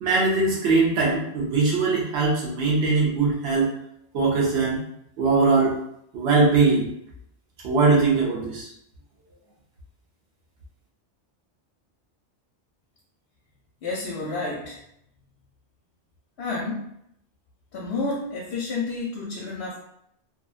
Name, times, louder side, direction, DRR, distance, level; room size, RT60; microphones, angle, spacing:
voice 1, 0.0-3.7 4.1-4.8 5.2-5.8 6.1-6.9 7.6-8.7, right 4 dB, 70° right, -3 dB, 1.0 m, -21 dB
voice 2, 13.8-14.8 16.4-16.9 17.7-19.8, left 3 dB, 65° left, -3 dB, 0.7 m, -30 dB
2.6 x 2.0 x 2.3 m, 0.74 s
omnidirectional pair, 1.2 m